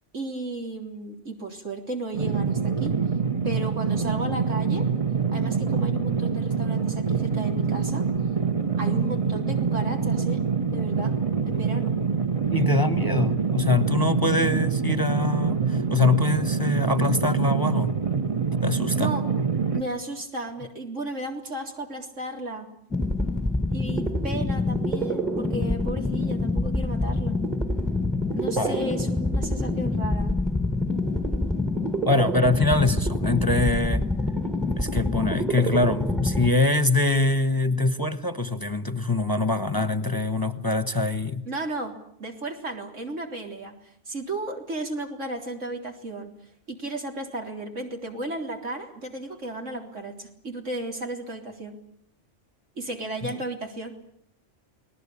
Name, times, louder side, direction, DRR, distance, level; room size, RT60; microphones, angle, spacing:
voice 1, 0.1-3.0 3.4-4.9 5.3-8.1 8.8-10.4 10.7-11.1 11.5-12.0 18.9-19.2 19.7-22.7 23.7-27.3 28.3-30.4 41.4-46.3 46.7-51.8 52.8-53.9, right 2 dB, 85° right, 3 dB, 4.1 m, -34 dB
sound 1, 2.1-19.8, right 5 dB, 30° right, 1.3 m, -25 dB
voice 2, 12.5-17.9 18.6-19.1 28.6-28.8 32.1-34.1 34.8-41.4, left 3 dB, 20° left, 12 dB, 1.1 m, -24 dB
sound 2, 22.9-36.5, left 1 dB, ahead, 1.3 m, -26 dB
29.5 x 19.5 x 8.6 m, 0.69 s
omnidirectional pair, 1.2 m